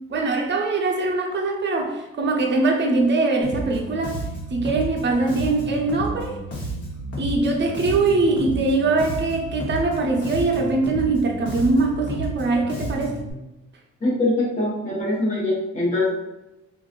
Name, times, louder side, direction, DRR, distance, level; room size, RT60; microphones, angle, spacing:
voice 1, 0.1-4.2 4.5-6.4 7.2-13.2, right 3 dB, 35° right, 1 dB, 0.7 m, -22 dB
Bass guitar, 3.4-13.3, right 1 dB, 50° left, 1.1 m, -32 dB
voice 2, 14.0-16.1, left 2 dB, 25° left, -9 dB, 1.0 m, -23 dB
2.9 x 2.6 x 2.5 m, 0.99 s
cardioid pair, 90°, 30 cm